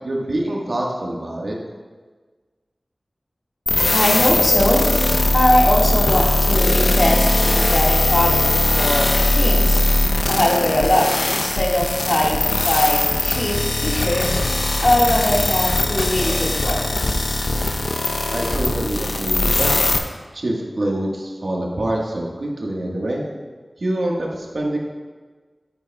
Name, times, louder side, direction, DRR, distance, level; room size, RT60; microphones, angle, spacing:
voice 1, 0.0-1.6 18.3-19.8 20.3-23.2 23.8-24.8, right 1 dB, 75° right, -1 dB, 1.4 m, -25 dB
sound 1, 3.7-20.0, left 2 dB, 70° left, 0.7 m, -20 dB
voice 2, 3.9-4.8 5.3-14.6 14.8-17.2, left 1 dB, 55° left, -3 dB, 1.7 m, -21 dB
9.6 x 9.2 x 2.3 m, 1.4 s
wide cardioid pair, 45°, 0 cm